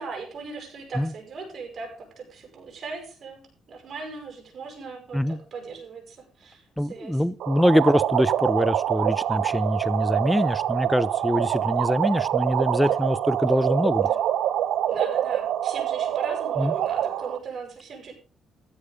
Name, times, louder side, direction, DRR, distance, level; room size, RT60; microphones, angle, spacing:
voice 1, 0.0-6.6 6.9-7.2 12.8-13.0 14.0-14.2 14.9-18.1, right 4 dB, 55° right, 7.7 m, -38 dB
voice 2, 6.8-14.1 16.6-16.7, equal, 5° left, 0.9 m, -24 dB
sound 1, 7.4-17.4, right 11 dB, 80° right, 1.2 m, -25 dB
15.0 x 11.0 x 5.2 m
cardioid pair, 90°, 0 cm